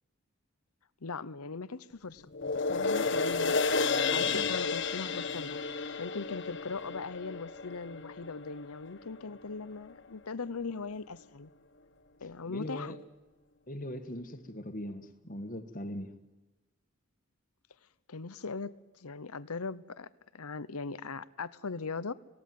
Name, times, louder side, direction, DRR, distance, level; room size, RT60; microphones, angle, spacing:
voice 1, 1.0-2.3 2.7-3.6 4.1-5.6 6.0-11.5 12.2-13.0 18.1-22.1, left 4 dB, 90° left, 16 dB, 0.9 m, -39 dB
sound 1, 2.3-8.9 9.4-9.5, left 4 dB, 55° left, 1.4 m, -32 dB
voice 2, 12.5-13.0 13.7-16.1, left 1 dB, 40° left, 7 dB, 1.8 m, -40 dB
25.0 x 18.0 x 9.4 m, 1.1 s
head